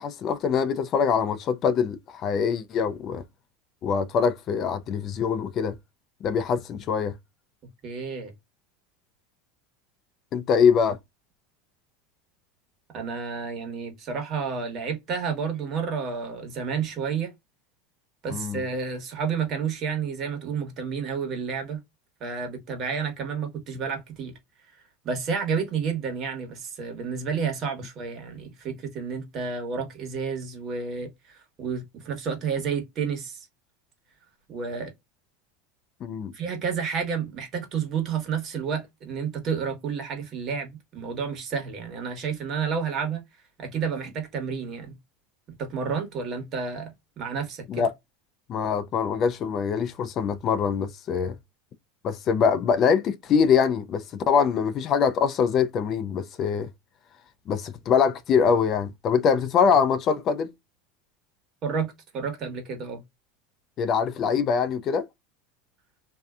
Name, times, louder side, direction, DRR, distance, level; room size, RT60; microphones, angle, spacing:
voice 1, 0.0-3.2 3.8-5.7 6.2-7.1 10.3-11.0 18.3-18.6 36.0-36.3 47.7-47.9 48.5-51.4 52.0-56.7 57.5-60.5 63.8-65.1, left 6 dB, 40° left, 0.4 m, -23 dB
voice 2, 7.8-8.3 12.9-17.3 18.2-21.8 22.2-24.3 25.0-33.5 34.5-34.9 36.3-43.2 43.6-44.9 45.6-47.9 61.6-63.0, right 6 dB, 45° right, 1.2 m, -30 dB
2.6 x 2.1 x 2.4 m
supercardioid pair, 110°, 0 cm